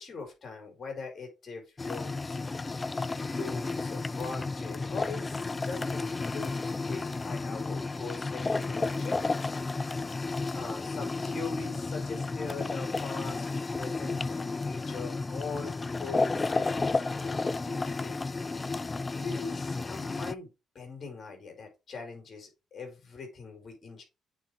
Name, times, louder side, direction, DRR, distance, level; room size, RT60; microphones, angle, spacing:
voice 1, 0.0-2.5 3.2-9.3 10.5-13.5 13.8-18.2 19.2-24.0, left 4 dB, 45° left, 2 dB, 4.7 m, -42 dB
sound 1, 1.8-20.3, left 3 dB, 25° left, 0.3 m, -32 dB
8.9 x 5.0 x 3.3 m, 0.26 s
cardioid pair, 90°, 0 cm